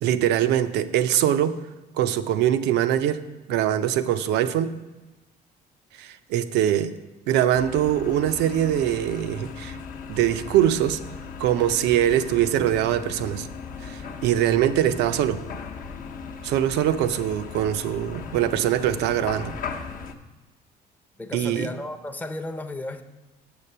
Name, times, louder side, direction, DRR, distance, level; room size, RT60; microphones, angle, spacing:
voice 1, 0.0-1.6 1.9-3.2 3.5-4.8 6.0-6.9 7.3-9.8 10.1-11.0 11.4-13.5 13.8-15.4 16.4-19.6 21.3-21.7, right 11 dB, 85° right, 11 dB, 0.5 m, -23 dB
sound 1, 7.5-20.1, left 5 dB, 55° left, 0.8 m, -37 dB
voice 2, 21.2-23.0, left 1 dB, 10° left, 5 dB, 0.5 m, -34 dB
6.9 x 6.7 x 5.5 m, 1.2 s
cardioid pair, 110°, 17 cm